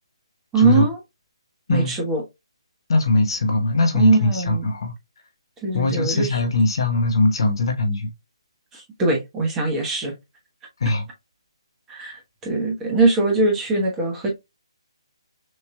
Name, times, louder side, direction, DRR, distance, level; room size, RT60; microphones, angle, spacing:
voice 1, 0.5-1.0 1.7-2.2 3.9-4.7 5.6-6.3 8.7-10.1 11.9-14.3, right 3 dB, 10° right, 1.2 m, -21 dB
voice 2, 2.9-4.9 5.7-8.1 10.8-11.0, left 2 dB, 50° left, 1.1 m, -20 dB
6.4 x 3.0 x 2.3 m
figure-of-eight pair, 145°, 3 cm